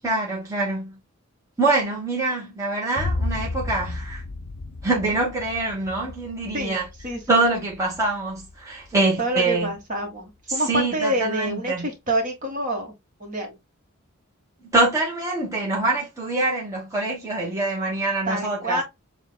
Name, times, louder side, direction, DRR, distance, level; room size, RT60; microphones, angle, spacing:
voice 1, 0.0-0.9 1.6-4.2 4.8-6.9 7.3-9.7 10.5-11.9 14.6-18.8, right 2 dB, 15° right, 1.1 m, -24 dB
Boom, 3.0-10.8, left 2 dB, 60° left, 0.6 m, -34 dB
voice 2, 7.0-7.4 9.2-12.9 13.2-13.6 18.3-18.8, right 1 dB, 40° right, 1.6 m, -27 dB
7.1 x 2.4 x 2.2 m
head